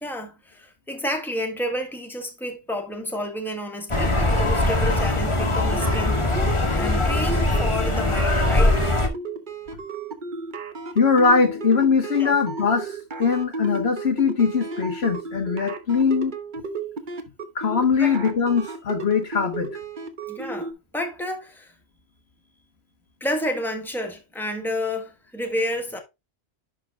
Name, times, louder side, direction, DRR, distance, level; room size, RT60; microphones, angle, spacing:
voice 1, 0.0-6.3 6.7-8.8 12.2-12.4 18.0-18.2 20.3-21.7 23.2-26.0, equal, ahead, 1.5 m, -30 dB
sound 1, 3.9-9.1, left 2 dB, 30° left, 1.5 m, -21 dB
sound 2, 5.7-20.7, right 3 dB, 50° right, 1.2 m, -33 dB
voice 2, 10.9-16.3 17.5-19.8, left 5 dB, 75° left, 1.6 m, -21 dB
11.0 x 3.9 x 3.7 m
omnidirectional pair, 1.1 m